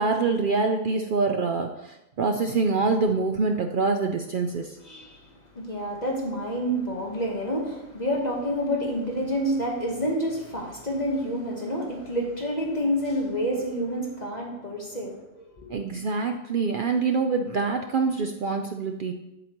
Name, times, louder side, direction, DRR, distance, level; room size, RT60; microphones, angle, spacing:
voice 1, 0.0-4.8 15.7-19.1, right 4 dB, 75° right, 4 dB, 0.4 m, -25 dB
voice 2, 4.8-15.8, equal, 35° left, -1 dB, 1.1 m, -28 dB
7.8 x 7.7 x 2.9 m, 0.94 s
omnidirectional pair, 1.4 m